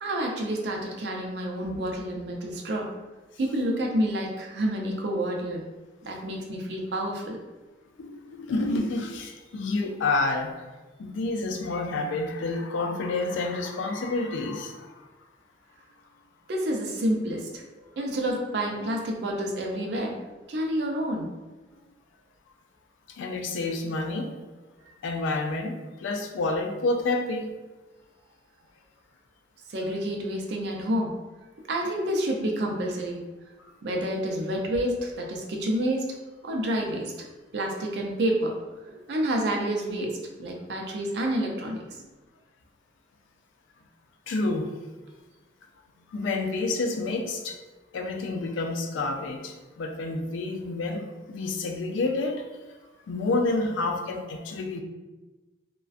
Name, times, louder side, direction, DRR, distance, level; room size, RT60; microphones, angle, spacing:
voice 1, 0.0-2.9 3.4-5.6 6.0-7.4 16.5-17.6 18.0-20.2 20.5-21.3 29.7-31.1 31.7-33.2 33.8-36.2 36.4-37.1 37.5-38.5 38.8-42.0, right 1 dB, 65° right, 0 dB, 0.4 m, -29 dB
voice 2, 8.0-10.5 11.0-15.0 18.8-18.9 23.1-24.3 25.0-25.7 26.0-27.5 36.5-36.6 44.3-44.7 46.1-47.6 47.9-52.5 53.1-54.8, left 3 dB, 85° left, 3 dB, 0.3 m, -29 dB
2.4 x 2.2 x 2.4 m, 1.2 s
head